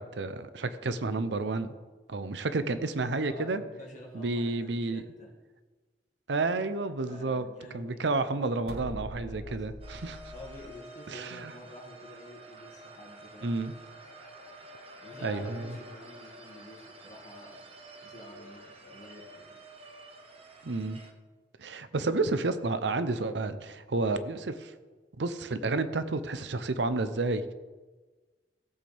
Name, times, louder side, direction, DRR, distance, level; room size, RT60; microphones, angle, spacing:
voice 1, 0.0-1.7 2.1-3.6 4.1-5.0 6.3-7.5 7.7-10.2 11.1-11.5 13.4-13.7 15.2-15.7 20.6-21.0 21.6-24.7 25.2-27.5, right 3 dB, 75° right, 12 dB, 0.7 m, -30 dB
voice 2, 3.2-5.3 7.1-8.2 9.1-9.6 10.3-13.6 15.0-17.7 18.0-19.6, left 1 dB, 45° left, -2 dB, 2.3 m, -48 dB
sound 1, 8.6-10.7, equal, 60° right, 1.2 m, -43 dB
sound 2, 9.8-21.1, right 1 dB, 35° right, 1.0 m, -49 dB
17.0 x 7.7 x 3.5 m, 1.3 s
head